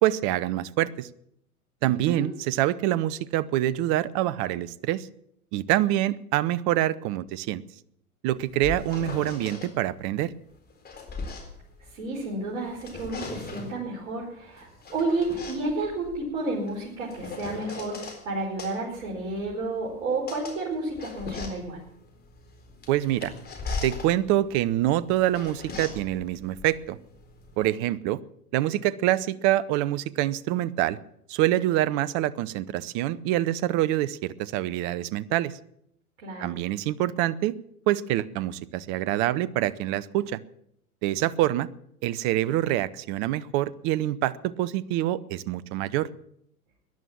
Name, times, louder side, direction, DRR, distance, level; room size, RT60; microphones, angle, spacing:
voice 1, 0.0-1.1 1.8-5.1 5.5-7.6 8.2-10.3 22.9-23.3 23.8-27.0 27.6-28.2 28.5-31.0 31.3-35.5 36.4-37.6 37.9-40.4 41.0-41.7 42.0-46.1, right 14 dB, 40° right, 19 dB, 0.8 m, -26 dB
voice 2, 1.8-2.3 11.9-21.8 36.2-36.6, right 2 dB, 55° right, -4 dB, 5.1 m, -31 dB
sound 1, 8.3-9.7 10.5-12.3 12.7-13.8 14.6-18.2 18.6-27.7, left 4 dB, 20° left, 4.0 m, -39 dB
18.0 x 11.0 x 7.3 m, 0.72 s
hypercardioid pair, 95°, 44 cm